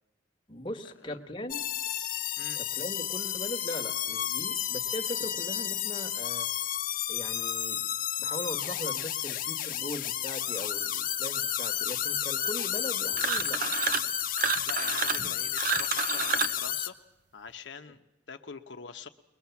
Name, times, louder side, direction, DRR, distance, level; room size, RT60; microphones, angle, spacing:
voice 1, 0.5-1.6 2.5-6.5 7.1-7.8 8.2-14.1, equal, 25° left, 4 dB, 1.4 m, -40 dB
sound 1, 1.5-16.9, left 10 dB, 50° left, 1.0 m, -32 dB
sound 2, 13.1-14.1 14.4-16.6, right 6 dB, 50° right, 0.8 m, -30 dB
voice 2, 14.7-16.9 17.3-19.1, left 5 dB, 80° left, 6 dB, 0.9 m, -44 dB
21.5 x 20.5 x 7.1 m, 0.98 s
head